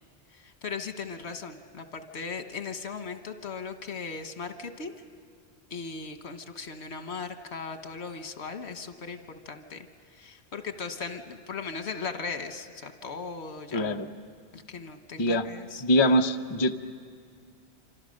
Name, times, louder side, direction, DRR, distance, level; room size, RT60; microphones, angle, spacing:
voice 1, 0.3-4.9 5.7-9.9 10.1-14.1 14.5-15.8, left 5 dB, 80° left, 8 dB, 1.4 m, -38 dB
voice 2, 13.7-14.1 15.2-15.5 15.8-16.8, equal, 30° left, 6 dB, 0.7 m, -23 dB
26.5 x 25.5 x 6.5 m, 2.1 s
omnidirectional pair, 1.1 m